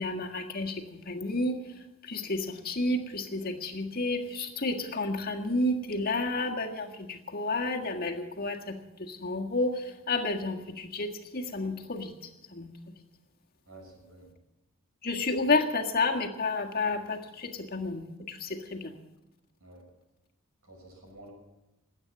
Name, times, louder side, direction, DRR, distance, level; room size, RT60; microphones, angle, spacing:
voice 1, 0.0-1.6 2.0-12.1 12.5-13.0 15.0-18.9, left 2 dB, 45° left, 2 dB, 1.7 m, -31 dB
voice 2, 13.7-14.4 19.6-19.8 20.6-21.3, right 2 dB, 90° right, 1 dB, 6.4 m, -51 dB
20.0 x 8.9 x 7.6 m, 0.95 s
head